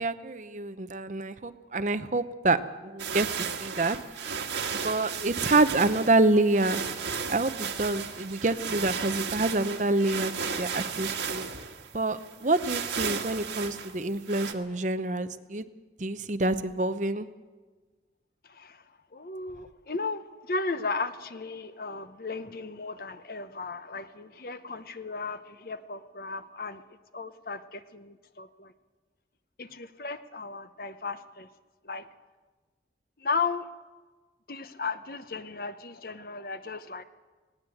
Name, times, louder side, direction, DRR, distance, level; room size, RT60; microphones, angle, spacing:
voice 1, 0.0-4.3 4.8-6.8 7.3-10.3 10.6-11.4 11.9-15.6 16.0-17.3, right 2 dB, 45° right, 11 dB, 0.8 m, -27 dB
sound 1, 3.0-14.5, right 6 dB, 85° right, 1.7 m, -34 dB
voice 2, 18.5-18.8 19.1-26.8 27.1-28.7 29.6-31.5 31.8-32.1 33.2-33.7 34.5-37.0, left 4 dB, 55° left, 11 dB, 0.8 m, -35 dB
19.5 x 17.0 x 7.9 m, 1.4 s
head